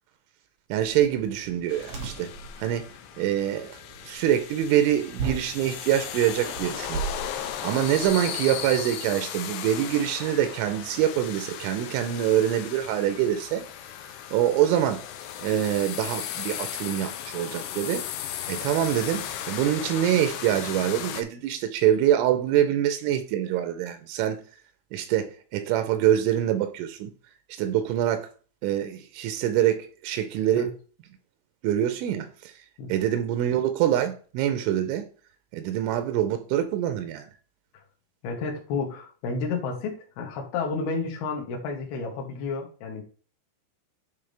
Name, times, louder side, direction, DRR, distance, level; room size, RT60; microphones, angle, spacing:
voice 1, 0.7-2.3 2.6-2.9 3.2-3.7 4.0-7.0 7.6-13.7 14.3-15.0 15.4-18.1 18.5-24.4 24.9-27.1 27.5-28.3 28.6-30.8 31.6-32.5 32.9-35.1 35.5-37.3, right 11 dB, 90° right, 3.2 m, -25 dB
sound 1, 0.8-8.1, right 5 dB, 60° right, 1.5 m, -38 dB
sound 2, 1.7-21.2, left 10 dB, 85° left, 2.4 m, -36 dB
voice 2, 38.2-43.0, left 4 dB, 65° left, 3.1 m, -31 dB
10.5 x 3.6 x 3.3 m
omnidirectional pair, 5.4 m